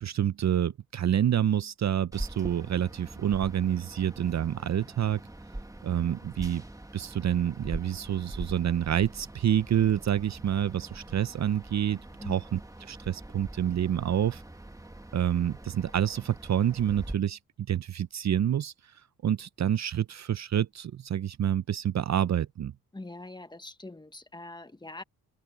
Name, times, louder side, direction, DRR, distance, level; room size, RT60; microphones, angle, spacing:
voice 1, 0.0-5.2 5.8-6.6 6.9-12.0 12.3-14.4 15.1-17.4 17.7-18.9 19.2-22.7, right 10 dB, 50° right, 0.7 m, -28 dB
sound 1, 2.1-17.1, right 1 dB, 10° right, 1.8 m, -43 dB
voice 2, 22.9-25.0, left 2 dB, 15° left, 1.5 m, -43 dB
open air
cardioid pair, 65°, 34 cm